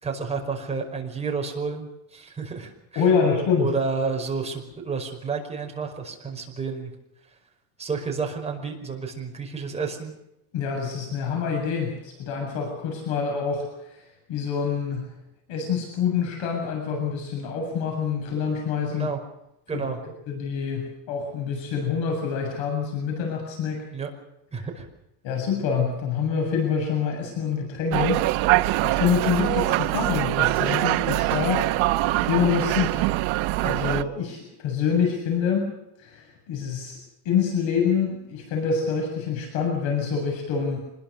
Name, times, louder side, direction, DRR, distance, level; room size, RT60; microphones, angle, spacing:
voice 1, 0.0-3.0 3.6-6.9 7.8-10.1 18.9-19.2 19.7-20.0 23.9-24.1 24.5-24.9, right 5 dB, 15° right, 1 dB, 5.2 m, -30 dB
voice 2, 3.0-3.7 10.5-14.0 14.3-15.1 15.5-19.1 19.7-19.9 20.3-23.8 24.6-24.7 25.2-28.2 28.6-31.6 32.2-33.1 33.6-35.7 36.0-37.0 37.2-40.8, left 6 dB, 75° left, 1 dB, 7.7 m, -26 dB
sound 1, 27.9-34.0, right 17 dB, 85° right, 1.0 m, -23 dB
26.0 x 21.5 x 6.7 m, 0.85 s
cardioid pair, 165°, 46 cm